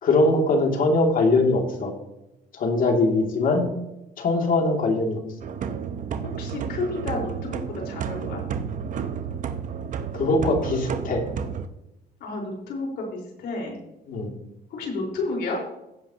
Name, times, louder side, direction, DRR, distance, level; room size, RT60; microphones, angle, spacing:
voice 1, 0.0-1.9 2.5-3.7 4.2-5.2 10.1-11.2 14.1-14.3, left 2 dB, 55° left, 2 dB, 2.7 m, -21 dB
sound 1, 5.4-11.7, right 7 dB, 50° right, 1.0 m, -31 dB
voice 2, 6.2-8.4 12.2-13.8 14.7-15.6, left 2 dB, 75° left, -1 dB, 4.7 m, -31 dB
16.0 x 8.3 x 3.0 m, 0.89 s
cardioid pair, 110°, 17 cm